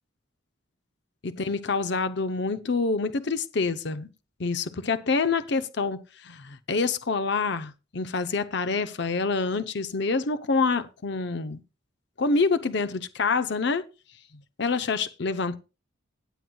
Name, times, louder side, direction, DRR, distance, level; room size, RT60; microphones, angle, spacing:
voice 1, 1.2-4.1 4.4-11.6 12.2-13.8 14.6-15.6, left 4 dB, 60° left, 0.7 m, -27 dB
17.0 x 7.8 x 2.3 m
head